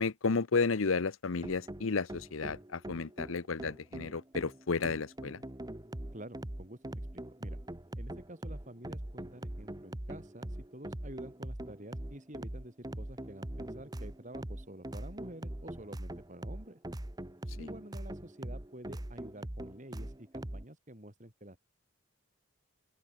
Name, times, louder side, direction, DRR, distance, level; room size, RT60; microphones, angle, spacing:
voice 1, 0.0-5.4 17.6-17.7, left 4 dB, 75° left, 0.8 m, -32 dB
sound 1, 1.4-20.6, right 1 dB, 20° right, 1.0 m, -42 dB
voice 2, 6.1-7.6 8.0-16.8 17.6-21.6, right 1 dB, 35° right, 4.8 m, -49 dB
open air
head